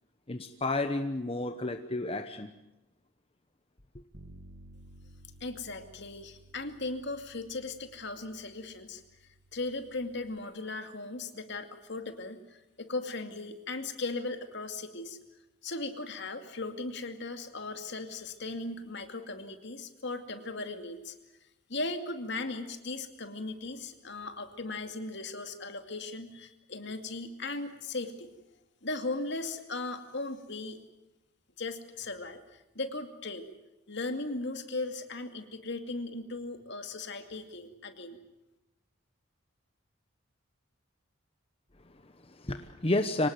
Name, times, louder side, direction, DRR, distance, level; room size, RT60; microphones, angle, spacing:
voice 1, 0.3-2.5 3.9-4.0 41.8-43.3, left 2 dB, 30° left, 8 dB, 1.1 m, -31 dB
Bass guitar, 4.1-10.4, right 1 dB, 75° right, 2.0 m, -56 dB
voice 2, 5.4-9.0 9.5-15.2 15.6-21.1 21.7-28.3 28.8-30.8 31.6-33.5 33.9-38.2, left 2 dB, 60° left, 7 dB, 2.4 m, -37 dB
25.0 x 19.0 x 9.4 m, 0.97 s
head